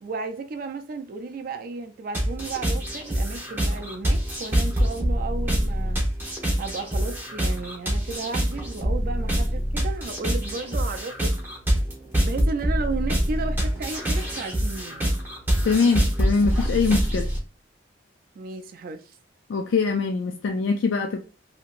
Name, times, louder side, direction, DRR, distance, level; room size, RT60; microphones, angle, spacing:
voice 1, 0.0-6.0 6.6-11.3 12.2-15.1 18.4-19.2, right 3 dB, 50° right, 0.3 m, -34 dB
sound 1, 2.1-17.4, equal, 10° right, 0.8 m, -25 dB
voice 2, 15.7-17.3 19.5-21.2, left 4 dB, 75° left, 0.4 m, -23 dB
2.9 x 2.8 x 2.5 m
head